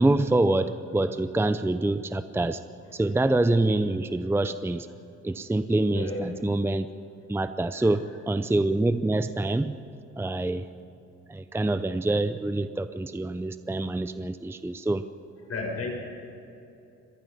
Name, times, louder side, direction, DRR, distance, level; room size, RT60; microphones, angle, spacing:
voice 1, 0.0-2.6 2.9-4.9 5.2-6.9 7.3-9.7 10.2-10.7 11.3-15.0, right 2 dB, 10° right, 11 dB, 0.6 m, -26 dB
voice 2, 5.9-6.4 7.7-8.2 10.7-10.8 15.5-16.0, left 3 dB, 55° left, 0 dB, 6.9 m, -35 dB
25.5 x 19.0 x 5.7 m, 2.9 s
cardioid pair, 90°, 30 cm